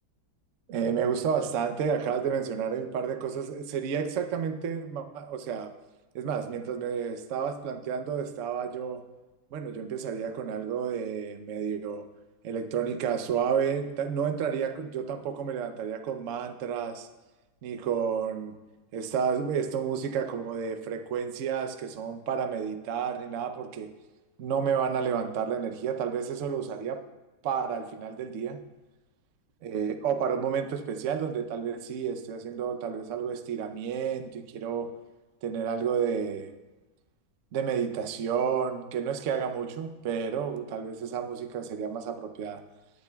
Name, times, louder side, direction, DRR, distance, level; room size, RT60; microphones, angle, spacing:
voice 1, 0.7-5.7 6.1-9.0 9.5-12.0 12.4-17.1 17.6-18.6 18.9-23.9 24.4-27.0 27.4-28.6 29.6-34.9 35.4-36.5 37.5-42.6, right 7 dB, 70° right, 8 dB, 0.7 m, -31 dB
18.5 x 9.0 x 2.3 m, 1.1 s
omnidirectional pair, 2.2 m